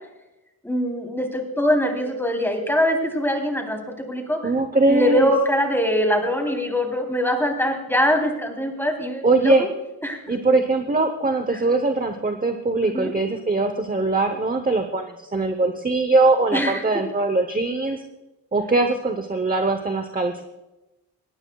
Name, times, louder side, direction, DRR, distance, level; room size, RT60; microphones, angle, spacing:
voice 1, 0.6-4.4 4.9-9.7 10.0-10.2 11.5-11.6 12.8-13.1 16.5-16.8, equal, 5° left, 2 dB, 3.5 m, -23 dB
voice 2, 4.4-5.3 9.2-9.6 10.3-18.0 18.5-20.4, right 3 dB, 20° right, 6 dB, 0.9 m, -21 dB
20.5 x 17.5 x 2.3 m, 1.0 s
wide cardioid pair, 105°, 40 cm